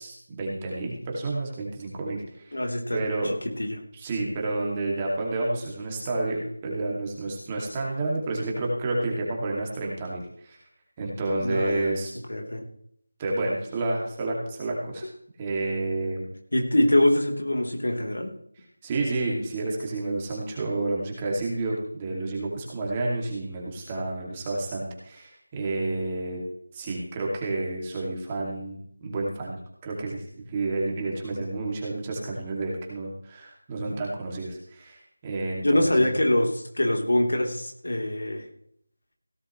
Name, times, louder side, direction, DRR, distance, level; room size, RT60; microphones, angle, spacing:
voice 1, 0.0-2.6 2.9-3.3 3.9-10.6 11.0-12.1 13.2-15.1 15.4-16.3 18.8-26.4 26.7-36.1, right 2 dB, 15° right, -2 dB, 2.6 m, -30 dB
voice 2, 2.5-3.8 11.4-11.9 12.3-12.6 16.5-18.3 35.6-38.4, left 1 dB, 70° left, 1 dB, 3.7 m, -24 dB
17.0 x 11.5 x 3.3 m, 0.67 s
figure-of-eight pair, 170°, 0 cm